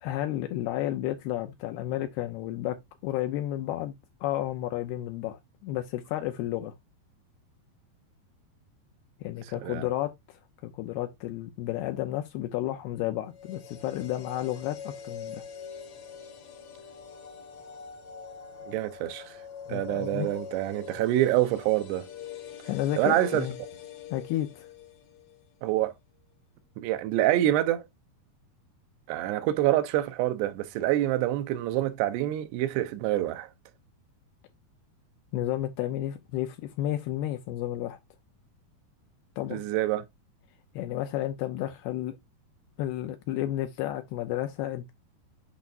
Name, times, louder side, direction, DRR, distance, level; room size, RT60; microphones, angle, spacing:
voice 1, 0.0-2.8 3.0-3.9 4.2-6.7 9.2-10.4 10.6-15.4 19.7-20.3 22.7-23.6 24.1-24.7 35.3-38.0 39.4-39.6 40.7-42.2 42.8-44.9, left 13 dB, 80° left, 2.6 m, -32 dB
sound 1, 13.3-25.4 25.7-25.8, left 7 dB, 60° left, 2.0 m, -44 dB
voice 2, 18.7-19.4 19.7-22.1 23.0-23.5 25.6-25.9 26.8-27.8 29.1-33.5 39.5-40.1, right 14 dB, 85° right, 2.9 m, -26 dB
8.3 x 5.7 x 2.5 m
omnidirectional pair, 4.8 m